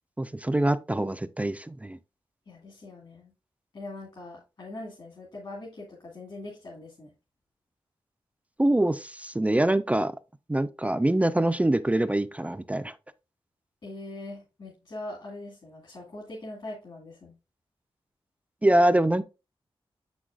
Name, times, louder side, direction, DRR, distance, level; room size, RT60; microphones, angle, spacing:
voice 1, 0.2-2.0 8.6-10.1 10.5-13.0 18.6-19.2, right 1 dB, 15° right, 0.3 m, -24 dB
voice 2, 2.5-3.3 3.7-7.1 13.8-17.3, left 2 dB, 55° left, 2.2 m, -42 dB
7.6 x 6.2 x 2.4 m
wide cardioid pair, 125°, 10 cm